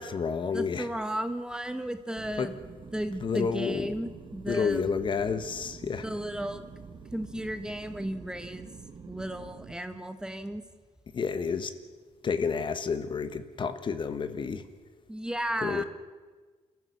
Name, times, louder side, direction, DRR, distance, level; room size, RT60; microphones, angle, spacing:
voice 1, 0.0-0.9 2.4-2.5 3.2-3.9 4.5-6.0 11.1-11.7 12.2-14.6 15.6-15.8, left 5 dB, 40° left, 11 dB, 1.3 m, -30 dB
voice 2, 0.5-2.5 2.9-4.9 6.0-6.7 7.1-8.7 9.1-10.6 15.1-15.8, right 1 dB, 5° right, 9 dB, 1.1 m, -34 dB
sound 1, 2.2-9.7, right 5 dB, 40° right, 1.6 m, -47 dB
28.5 x 14.5 x 6.9 m, 1.4 s
cardioid pair, 130°, 12 cm